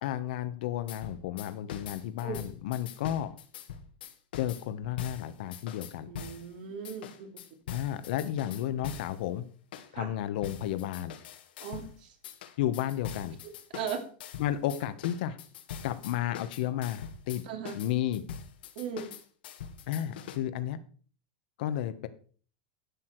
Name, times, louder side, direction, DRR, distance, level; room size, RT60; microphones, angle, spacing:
voice 1, 0.0-3.3 4.4-6.1 7.7-9.4 9.9-11.1 12.6-13.4 14.4-15.4 15.8-17.4 17.7-18.2 19.9-20.8 21.6-22.1, left 11 dB, 65° left, 11 dB, 1.1 m, -32 dB
sound 1, 0.9-6.5 6.9-9.2 9.7-9.9 10.4-11.9 12.2-20.4, left 8 dB, 85° left, 1.7 m, -43 dB
voice 2, 6.1-7.3 9.9-10.1 11.6-12.2 13.7-14.0 17.4-17.8 18.7-19.1, right 6 dB, 65° right, 5 dB, 3.1 m, -38 dB
11.5 x 8.5 x 4.6 m, 0.42 s
supercardioid pair, 160°, 5 cm